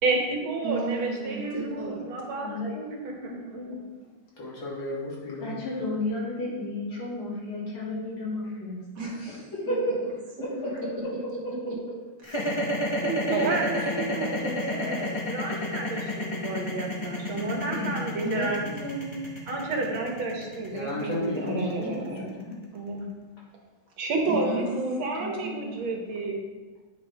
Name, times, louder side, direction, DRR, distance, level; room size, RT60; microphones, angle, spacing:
voice 1, 0.0-2.5 3.0-3.3 13.3-18.6 19.5-22.3 22.7-23.1 24.0-24.7 25.0-26.4, right 3 dB, 80° right, 1 dB, 2.0 m, -31 dB
voice 2, 0.6-2.1 9.0-9.8 10.5-10.6 11.7-11.8 12.3-12.7 13.0-15.0 18.2-19.2 24.3-25.7, right 2 dB, 60° right, -3 dB, 2.2 m, -34 dB
voice 3, 2.4-3.8 5.4-8.8 9.3-10.0 11.4-11.5 13.3-13.4 17.7-18.0 21.4-22.6 24.4-24.5, left 1 dB, 90° left, -7 dB, 3.3 m, -33 dB
voice 4, 4.4-5.5 20.7-22.0, left 1 dB, 65° left, -4 dB, 2.4 m, -33 dB
sound 1, 12.2-22.4, left 1 dB, 50° left, 0.3 m, -30 dB
9.4 x 5.4 x 3.4 m, 1.3 s
omnidirectional pair, 2.2 m